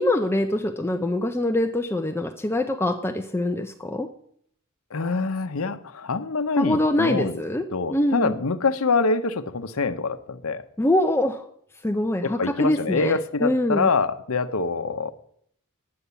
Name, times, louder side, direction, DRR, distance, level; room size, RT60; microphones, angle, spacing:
voice 1, 0.0-4.1 6.6-8.4 10.8-11.4 11.8-13.9, left 1 dB, 10° left, 5 dB, 0.5 m, -24 dB
voice 2, 4.9-7.4 7.7-10.6 12.2-15.1, left 4 dB, 75° left, 11 dB, 0.8 m, -25 dB
9.8 x 8.6 x 6.9 m, 0.66 s
head